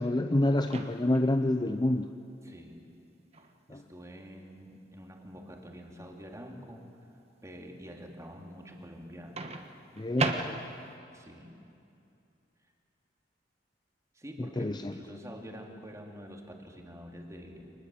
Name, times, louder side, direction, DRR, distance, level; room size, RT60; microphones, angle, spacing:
voice 1, 0.0-2.1 3.7-3.8 10.0-10.6 14.4-14.9, left 1 dB, 25° left, 8 dB, 0.6 m, -28 dB
Microwave oven, 0.6-1.3 3.3-3.5 9.4-11.0, right 3 dB, 35° right, 1.3 m, -35 dB
voice 2, 2.4-2.8 3.7-6.8 7.4-9.5 11.1-11.6 14.1-17.7, equal, 15° right, 1 dB, 2.5 m, -46 dB
25.0 x 20.0 x 7.6 m, 2.6 s
head